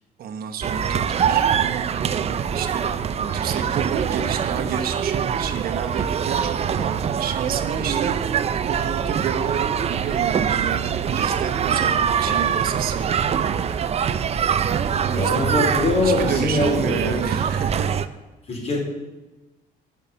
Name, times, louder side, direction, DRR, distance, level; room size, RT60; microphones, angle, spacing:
voice 1, 0.2-1.5 2.5-14.1 14.6-15.5 16.0-17.9, right 7 dB, 65° right, 6 dB, 1.2 m, -31 dB
sound 1, 0.6-18.1, right 8 dB, 40° right, 0.6 m, -23 dB
voice 2, 15.1-17.2 18.5-18.8, left 2 dB, 40° left, -1 dB, 4.5 m, -23 dB
10.5 x 6.0 x 8.7 m, 1.1 s
cardioid pair, 110°, 17 cm